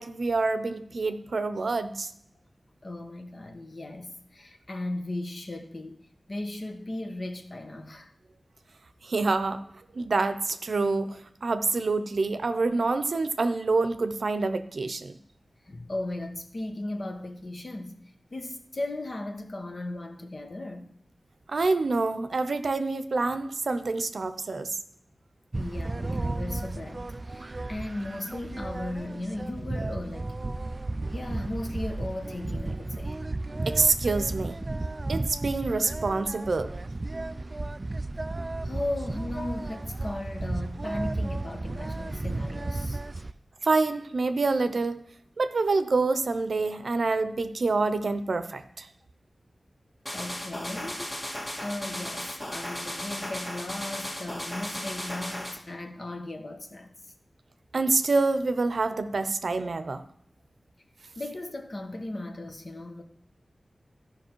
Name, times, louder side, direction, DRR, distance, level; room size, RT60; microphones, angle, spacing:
voice 1, 0.0-2.1 9.0-9.6 9.9-15.1 21.5-24.7 33.7-34.6 35.1-36.7 43.6-45.0 45.4-48.9 57.7-60.0, right 3 dB, 75° right, 0.6 m, -27 dB
voice 2, 2.8-6.0 6.3-8.1 15.7-18.0 18.3-20.9 25.5-30.3 31.1-33.2 38.6-43.3 50.1-51.1 51.6-56.9 61.1-63.0, left 1 dB, 55° left, 1.2 m, -36 dB
sound 1, 25.5-43.3, right 2 dB, 40° right, 0.3 m, -33 dB
sound 2, 50.1-55.6, equal, 30° left, 1.8 m, -36 dB
13.5 x 5.3 x 4.5 m
wide cardioid pair, 80°, 0 cm